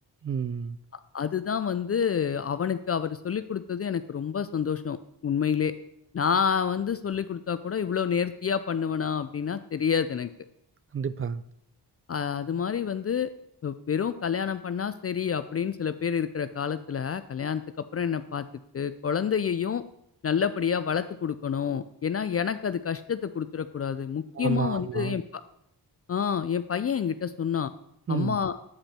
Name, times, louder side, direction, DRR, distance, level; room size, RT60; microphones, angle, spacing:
voice 1, 0.2-0.8 10.9-11.4 24.4-25.2 28.1-28.4, right 6 dB, 35° right, 0.4 m, -30 dB
voice 2, 1.1-5.0 5.2-5.7 6.1-10.3 12.1-13.3 13.6-18.4 18.7-19.8 20.2-25.4 26.1-27.7 28.1-28.6, left 7 dB, 40° left, 0.4 m, -28 dB
8.5 x 5.2 x 4.3 m
cardioid pair, 55°, 41 cm